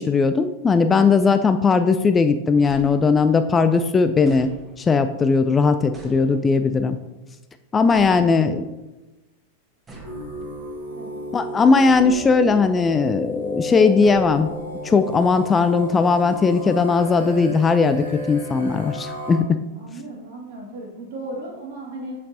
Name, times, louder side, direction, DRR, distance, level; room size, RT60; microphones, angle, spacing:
voice 1, 0.0-7.0 7.7-8.6 11.3-14.5 14.8-19.6, left 4 dB, 20° left, 10 dB, 0.3 m, -18 dB
sound 1, 2.6-3.5 4.2-5.1 5.9-6.8 7.9-8.7 9.9-10.9 11.9-12.6 14.0-14.9, right 2 dB, 15° right, 1.3 m, -43 dB
voice 2, 7.8-8.7 11.0-11.1 19.7-22.2, right 2 dB, 50° right, -2 dB, 2.1 m, -36 dB
sound 2, 10.0-19.4, left 1 dB, 80° right, 2.0 m, -32 dB
7.2 x 6.4 x 2.7 m, 1.0 s
figure-of-eight pair, 90°, 0 cm